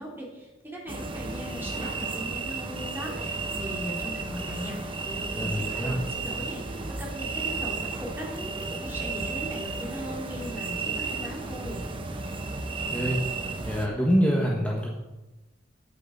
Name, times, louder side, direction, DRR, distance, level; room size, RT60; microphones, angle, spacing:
voice 1, 0.0-6.6 6.9-11.8, equal, 10° right, -3 dB, 2.6 m, -39 dB
sound 1, 0.9-13.9, right 3 dB, 30° right, 0.9 m, -33 dB
voice 2, 5.3-6.0 12.9-13.2 13.6-14.9, equal, 10° left, -4 dB, 1.3 m, -25 dB
8.7 x 8.6 x 5.5 m, 1.1 s
head